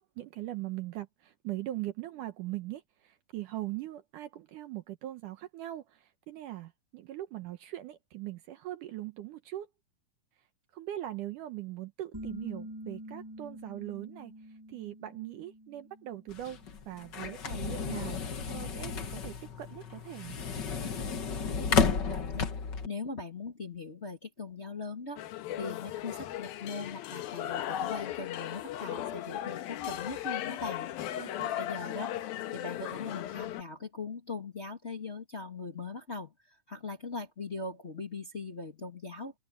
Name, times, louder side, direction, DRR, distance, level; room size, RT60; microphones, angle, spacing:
voice 1, 0.0-9.7 10.7-14.3 14.7-20.4 31.1-31.6, right 14 dB, 70° right, 2.3 m, -41 dB
sound 1, 12.1-17.5, equal, 5° right, 7.8 m, -47 dB
sound 2, 16.3-22.9, left 6 dB, 55° left, 1.2 m, -32 dB
voice 2, 21.7-22.5 22.9-25.2 25.6-30.9 31.6-32.1 32.5-36.3 36.7-39.3, left 3 dB, 25° left, 1.7 m, -40 dB
sound 3, 25.2-33.6, left 12 dB, 80° left, 3.0 m, -37 dB
open air
omnidirectional pair, 4.2 m